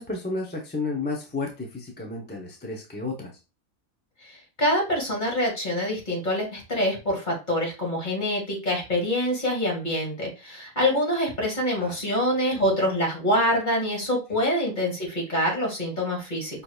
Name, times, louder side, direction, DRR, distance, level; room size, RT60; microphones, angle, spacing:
voice 1, 0.0-3.3 11.8-12.0, left 3 dB, 10° left, 0 dB, 0.6 m, -32 dB
voice 2, 4.2-16.6, equal, 40° left, -1 dB, 2.0 m, -25 dB
5.4 x 3.2 x 2.3 m, 0.29 s
omnidirectional pair, 1.3 m